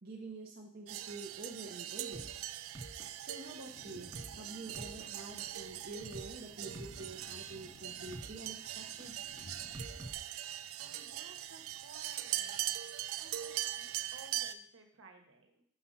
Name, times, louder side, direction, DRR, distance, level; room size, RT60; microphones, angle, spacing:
voice 1, 0.0-2.3 3.2-9.2, right 3 dB, 45° right, -1 dB, 0.7 m, -47 dB
sound 1, 0.9-14.5, right 12 dB, 85° right, 0.4 m, -41 dB
sound 2, 2.1-2.4 2.7-3.5 3.7-4.4 4.7-5.4 5.7-6.4 6.7-7.5 7.7-8.4 8.7-10.1, right 1 dB, 15° right, 0.8 m, -48 dB
sound 3, 3.7-10.1, left 1 dB, 60° left, 0.9 m, -57 dB
voice 2, 10.8-12.6 13.2-15.6, right 3 dB, 70° right, 3 dB, 1.3 m, -57 dB
5.8 x 5.3 x 5.6 m, 0.63 s
head